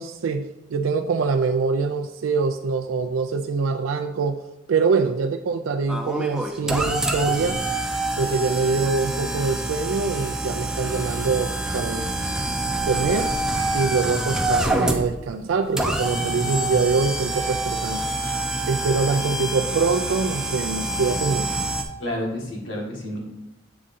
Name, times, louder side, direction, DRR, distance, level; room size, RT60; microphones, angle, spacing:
voice 1, 0.0-4.4 4.7-7.6 8.2-12.1 12.7-13.3 13.7-18.0 18.7-21.5, right 4 dB, 85° right, 5 dB, 0.4 m, -24 dB
sound 1, 5.9-21.8, right 2 dB, 5° right, 0.4 m, -26 dB
voice 2, 22.0-23.2, left 1 dB, 70° left, -1 dB, 1.5 m, -30 dB
7.6 x 3.6 x 4.1 m, 0.95 s
head